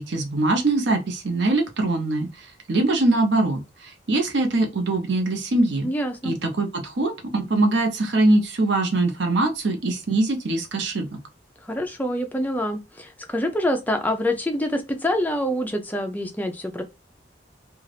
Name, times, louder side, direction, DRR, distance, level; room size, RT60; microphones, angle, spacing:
voice 1, 0.0-5.9 6.2-11.1, right 2 dB, 80° right, 0.7 m, -22 dB
voice 2, 5.8-6.3 11.6-16.8, left 1 dB, 10° left, 0.4 m, -26 dB
2.5 x 2.4 x 3.3 m
head